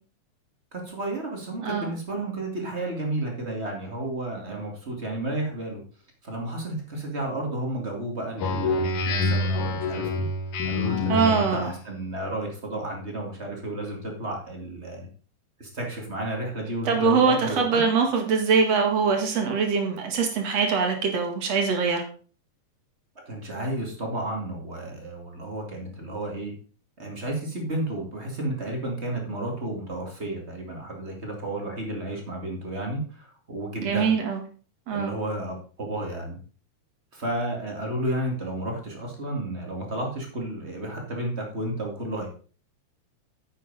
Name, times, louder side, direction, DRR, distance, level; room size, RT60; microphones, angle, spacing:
voice 1, 0.7-5.8 6.2-10.3 10.6-15.1 15.6-17.8 23.3-26.5 27.0-34.1 34.9-36.4 37.1-42.3, right 1 dB, 25° right, 1 dB, 2.2 m, -32 dB
Speech synthesizer, 8.4-11.7, left 3 dB, 85° left, 2.7 m, -26 dB
voice 2, 11.1-11.7 16.9-22.0 33.8-34.4 34.9-35.1, right 5 dB, 60° right, 3 dB, 2.8 m, -23 dB
9.9 x 7.5 x 4.1 m, 0.39 s
omnidirectional pair, 3.3 m